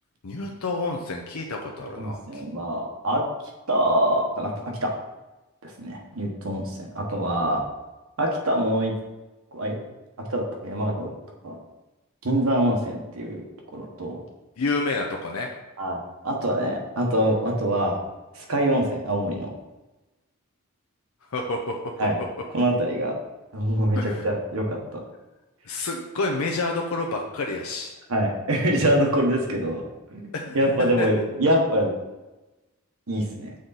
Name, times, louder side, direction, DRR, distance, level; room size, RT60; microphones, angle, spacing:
voice 1, 0.2-2.4 14.6-15.5 21.3-21.9 23.9-24.2 25.6-27.9 30.3-31.1, left 3 dB, 90° left, 1 dB, 0.6 m, -29 dB
voice 2, 1.8-3.2 3.7-4.5 4.8-4.9 5.6-7.6 8.2-8.9 9.5-9.8 10.3-11.1 11.4-11.6 12.2-13.4 13.7-14.2 15.8-18.0 18.3-19.5 22.0-22.2 22.5-23.1 23.5-25.0 28.1-29.8 30.1-31.9 33.1-33.5, right 1 dB, 80° right, 1 dB, 1.2 m, -24 dB
6.3 x 3.8 x 4.0 m, 1.1 s
head